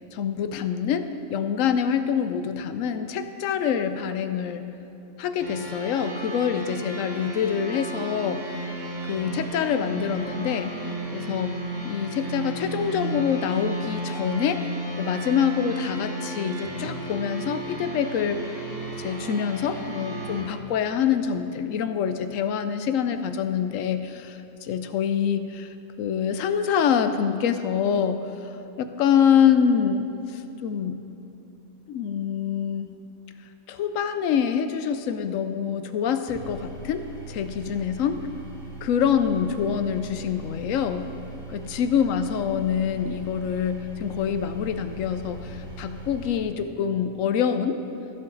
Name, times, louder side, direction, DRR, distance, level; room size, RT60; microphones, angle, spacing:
voice 1, 0.1-4.7 5.2-8.5 9.0-10.8 11.1-11.6 11.8-14.7 15.0-18.6 19.0-28.5 28.8-31.0 31.9-32.9 33.7-38.2 38.8-41.1 41.5-47.8, left 8 dB, 70° left, 9 dB, 0.9 m, -25 dB
sound 1, 5.4-20.4, right 2 dB, 50° right, 3.0 m, -33 dB
sound 2, 36.3-46.4, right 3 dB, 15° right, 1.6 m, -40 dB
14.0 x 7.8 x 3.9 m, 2.9 s
omnidirectional pair, 1.5 m